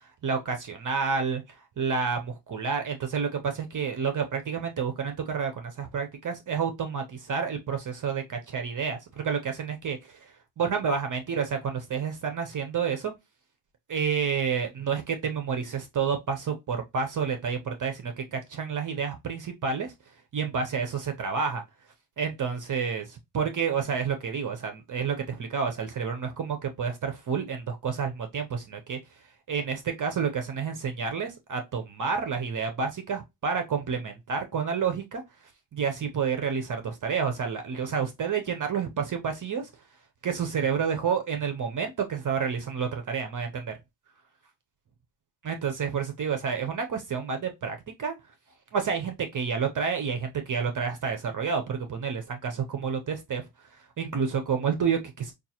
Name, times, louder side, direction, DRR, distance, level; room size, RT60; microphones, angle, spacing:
voice 1, 0.2-13.1 13.9-19.9 20.3-21.6 22.2-29.0 29.5-35.2 35.7-39.7 40.2-43.7 45.4-48.1 48.7-53.5 53.7-55.3, right 6 dB, 40° right, 0.6 m, -29 dB
5.2 x 2.3 x 2.8 m
wide cardioid pair, 150°, 49 cm